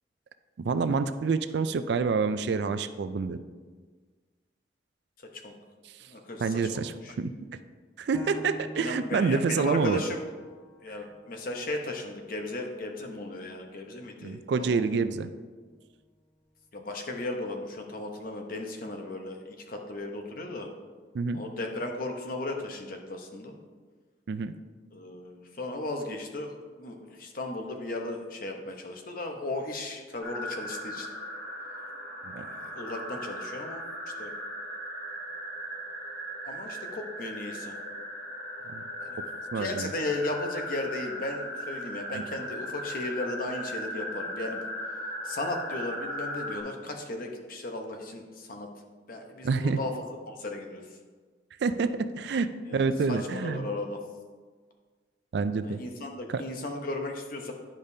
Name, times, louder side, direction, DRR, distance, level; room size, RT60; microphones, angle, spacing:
voice 1, 0.6-3.4 6.4-7.3 8.0-10.0 14.2-15.3 21.1-21.4 24.3-24.5 32.2-32.4 38.7-38.8 39.5-39.9 42.1-42.2 49.4-49.8 51.6-53.7 55.3-55.8 56.3-56.4, right 4 dB, 65° right, 11 dB, 0.3 m, -28 dB
voice 2, 6.1-7.1 8.8-10.2 10.8-15.0 16.7-20.7 21.3-23.5 24.9-31.1 32.4-33.8 34.2-34.4 36.4-37.7 39.0-39.2 39.5-44.6 45.2-48.7 49.1-49.9 50.3-50.8 52.7-54.0 55.6-57.5, left 2 dB, 50° left, 3 dB, 0.9 m, -36 dB
Piano, 8.1-13.3 13.8-13.9 14.5-15.0, equal, 15° left, 0.4 m, -47 dB
sound 1, 30.2-46.6, equal, ahead, 1.8 m, -38 dB
10.5 x 5.0 x 2.7 m, 1.4 s
head